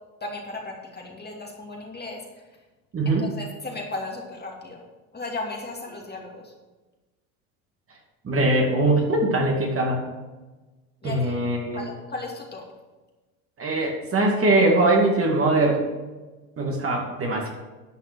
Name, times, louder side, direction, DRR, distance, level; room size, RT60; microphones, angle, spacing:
voice 1, 0.2-2.2 3.2-4.8 5.1-6.5 11.0-11.3 11.7-12.6, left 2 dB, 25° left, 0 dB, 2.6 m, -35 dB
voice 2, 2.9-3.3 8.2-10.0 11.0-11.8 13.6-15.8 16.6-17.5, right 2 dB, 30° right, 1 dB, 2.4 m, -21 dB
11.5 x 5.8 x 6.3 m, 1.2 s
hypercardioid pair, 85°, 42 cm